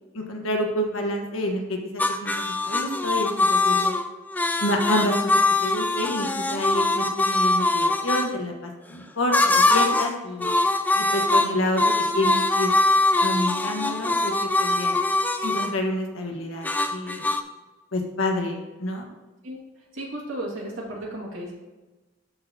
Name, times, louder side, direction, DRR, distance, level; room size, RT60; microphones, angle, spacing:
voice 1, 0.1-1.8 2.2-3.9 4.6-10.5 10.9-12.7 13.2-15.0 15.4-17.3 17.9-19.1, left 1 dB, 80° left, 2 dB, 1.3 m, -28 dB
sound 1, 2.0-8.3 9.3-10.2 10.4-15.8 16.6-17.4, left 2 dB, 10° left, 0.3 m, -22 dB
voice 2, 19.9-21.5, right 1 dB, 75° right, -2 dB, 2.1 m, -34 dB
12.5 x 4.2 x 2.8 m, 1.2 s
head